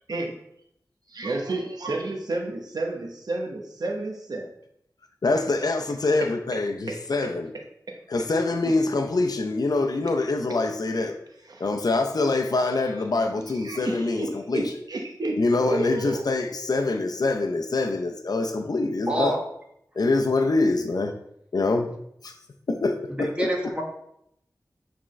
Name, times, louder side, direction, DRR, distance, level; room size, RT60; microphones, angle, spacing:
voice 1, 1.1-4.5 6.2-6.6 6.9-7.3 7.9-8.0 11.4-11.7 12.8-13.0 13.5-15.4 15.6-16.2, right 2 dB, 70° right, 1 dB, 0.9 m, -31 dB
voice 2, 5.2-7.5 8.1-11.2 11.6-14.6 15.4-19.3 20.0-21.2 21.5-21.9 22.2-22.3 22.7-23.5, left 3 dB, 70° left, 5 dB, 0.6 m, -25 dB
voice 3, 19.1-19.4 23.2-23.8, right 1 dB, 15° right, -1 dB, 1.5 m, -26 dB
8.6 x 3.7 x 3.2 m, 0.75 s
wide cardioid pair, 85°, 7 cm